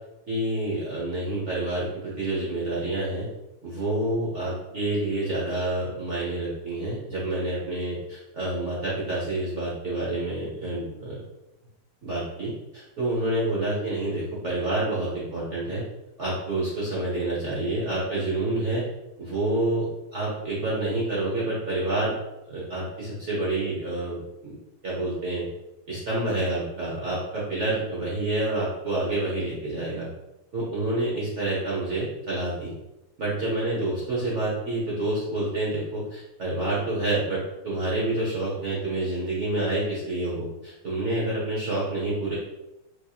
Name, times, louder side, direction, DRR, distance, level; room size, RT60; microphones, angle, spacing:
voice 1, 0.3-3.3 3.6-11.2 12.0-15.8 16.2-18.8 19.2-22.1 22.5-24.6 24.8-25.5 25.9-30.1 30.5-32.7 33.2-42.3, right 2 dB, 65° right, -7 dB, 0.7 m, -28 dB
4.4 x 2.7 x 2.3 m, 0.94 s
omnidirectional pair, 2.4 m